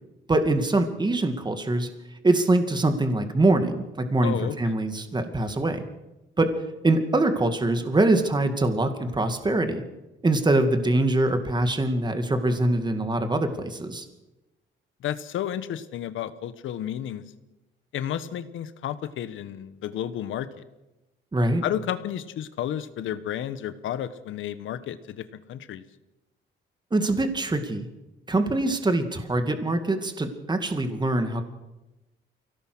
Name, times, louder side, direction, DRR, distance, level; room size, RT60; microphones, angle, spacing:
voice 1, 0.3-1.9 2.2-5.8 6.4-6.5 6.8-9.8 10.2-14.0 21.3-21.6 26.9-27.9 28.3-31.4, right 2 dB, 20° right, 7 dB, 2.4 m, -23 dB
voice 2, 4.2-4.8 15.0-17.2 17.9-20.6 21.6-25.8, left 10 dB, 80° left, 13 dB, 1.3 m, -32 dB
24.0 x 17.5 x 6.3 m, 1.0 s
cardioid pair, 90°, 20 cm